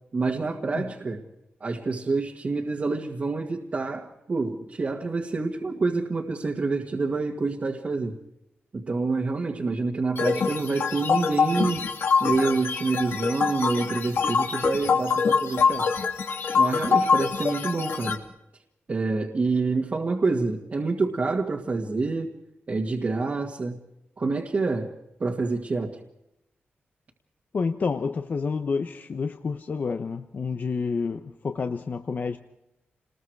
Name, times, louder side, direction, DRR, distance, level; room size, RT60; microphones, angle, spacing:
voice 1, 0.1-1.2 1.6-8.2 8.7-11.9 12.2-15.9 16.5-18.2 18.9-22.3 22.7-23.8 24.2-24.9 25.2-26.0, right 3 dB, 35° right, 1.9 m, -27 dB
sound 1, 10.2-18.1, left 5 dB, 70° left, 2.6 m, -24 dB
voice 2, 27.5-32.4, left 5 dB, 45° left, 1.0 m, -29 dB
29.5 x 20.5 x 4.7 m
wide cardioid pair, 145°, 4 cm